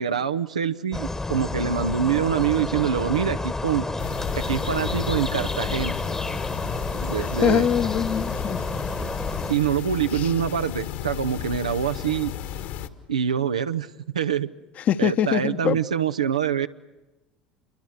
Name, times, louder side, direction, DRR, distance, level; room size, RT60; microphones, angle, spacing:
voice 1, 0.0-3.9 4.4-6.0 7.0-7.7 9.5-12.3 13.1-13.9 14.1-14.5 15.0-16.7, right 8 dB, 80° right, 10 dB, 0.8 m, -25 dB
sound 1, 0.9-9.5, left 2 dB, 15° left, 1.3 m, -30 dB
sound 2, 4.0-12.9, left 10 dB, 60° left, 1.8 m, -33 dB
voice 2, 7.2-8.7 10.1-10.3 14.9-15.8, left 9 dB, 45° left, 10 dB, 1.1 m, -23 dB
28.0 x 23.0 x 8.0 m, 1.1 s
figure-of-eight pair, 65°, 4 cm